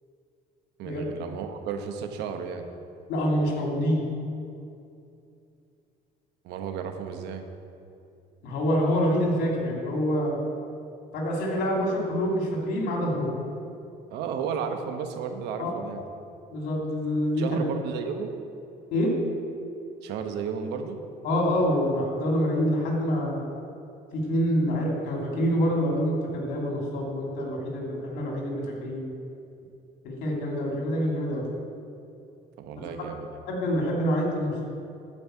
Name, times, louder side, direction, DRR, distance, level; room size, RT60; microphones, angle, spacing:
voice 1, 0.8-2.7 6.4-7.4 14.1-16.0 17.4-18.3 20.0-21.0 32.6-33.3, right 6 dB, 85° right, 6 dB, 1.0 m, -33 dB
voice 2, 3.1-4.0 8.4-10.4 11.1-13.3 15.6-15.7 16.5-17.6 18.9-19.1 21.2-23.4 24.1-29.1 30.0-31.4 33.5-34.7, equal, 85° left, -1 dB, 2.8 m, -26 dB
11.5 x 5.4 x 7.9 m, 2.6 s
cardioid pair, 110°, 17 cm